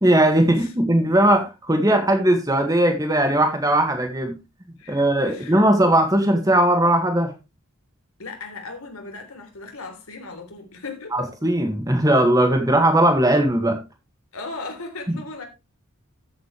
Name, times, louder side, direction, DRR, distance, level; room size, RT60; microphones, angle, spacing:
voice 1, 0.0-4.3 4.9-7.3 11.1-13.8, right 1 dB, 15° right, 1.8 m, -19 dB
voice 2, 4.8-5.6 8.2-11.3 14.3-15.4, left 3 dB, 75° left, 3.6 m, -37 dB
13.5 x 8.1 x 3.3 m
head